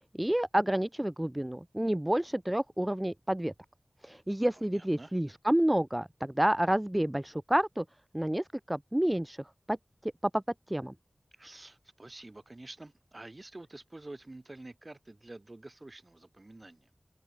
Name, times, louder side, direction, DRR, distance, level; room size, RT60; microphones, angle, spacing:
voice 1, 0.2-3.5 4.0-7.8 8.1-9.8 10.0-10.4 10.7-10.9, right 1 dB, 15° right, 0.6 m, -29 dB
voice 2, 4.5-5.1 11.3-16.9, right 2 dB, 40° right, 7.6 m, -48 dB
open air
wide cardioid pair, 60°, 0 cm